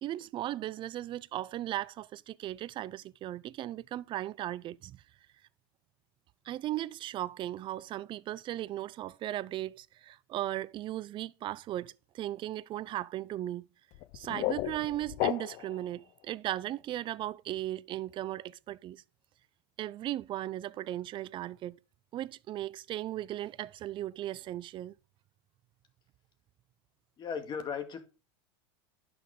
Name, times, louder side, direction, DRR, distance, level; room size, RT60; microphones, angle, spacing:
voice 1, 0.0-5.0 6.5-13.7 14.1-19.0 19.8-21.8 22.1-24.9, right 13 dB, 35° right, 0.4 m, -37 dB
sound 1, 13.9-15.8, left 17 dB, 55° left, 0.5 m, -34 dB
voice 2, 27.2-28.0, left 6 dB, 35° left, 2.0 m, -36 dB
11.0 x 6.1 x 3.7 m
supercardioid pair, 115°, 14 cm